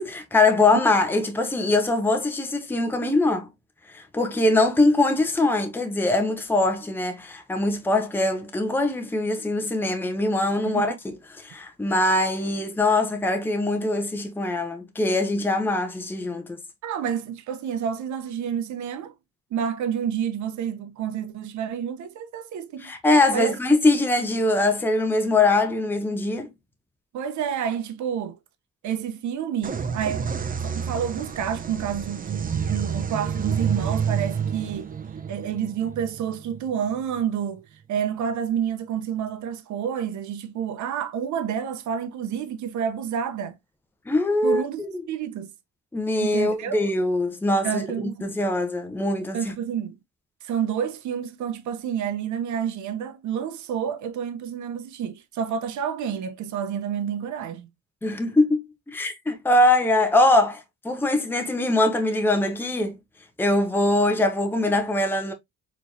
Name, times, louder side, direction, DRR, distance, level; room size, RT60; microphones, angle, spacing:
voice 1, 0.0-3.5 3.9-16.6 22.8-26.5 44.1-44.9 45.9-49.4 58.0-62.9 63.4-65.3, left 2 dB, 5° left, 0.8 m, -22 dB
voice 2, 16.8-19.1 19.5-22.9 23.3-23.6 27.1-28.4 28.8-30.4 30.6-34.9 35.3-43.6 44.4-44.8 45.1-45.5 46.2-46.8 47.6-48.2 49.3-50.0 50.4-57.7, right 8 dB, 70° right, 0.8 m, -29 dB
sound 1, 29.6-37.2, right 7 dB, 30° right, 0.6 m, -29 dB
4.4 x 3.1 x 2.6 m
cardioid pair, 90°, 30 cm